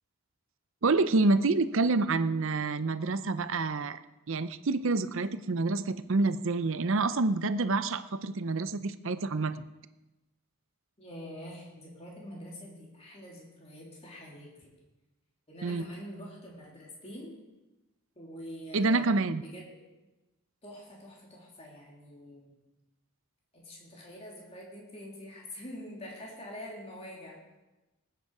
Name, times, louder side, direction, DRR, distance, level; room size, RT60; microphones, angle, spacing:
voice 1, 0.8-4.0 4.3-9.6 15.6-15.9 18.7-19.4, right 3 dB, 60° right, 12 dB, 0.6 m, -27 dB
voice 2, 11.0-14.7 15.5-17.3 18.1-19.2 19.4-19.6 20.6-22.6 23.5-27.4, equal, 25° left, -3 dB, 3.3 m, -45 dB
19.5 x 9.2 x 4.8 m, 1.1 s
head